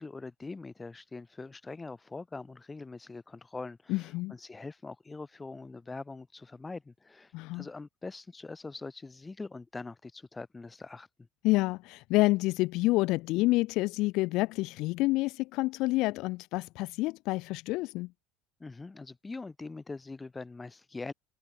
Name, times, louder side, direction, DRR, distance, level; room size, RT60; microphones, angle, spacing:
voice 1, 0.0-11.1 18.6-21.1, left 3 dB, 10° left, 2.7 m, -43 dB
voice 2, 3.9-4.3 7.3-7.7 11.4-18.1, left 21 dB, 50° left, 0.9 m, -28 dB
cardioid pair, 170°, 0 cm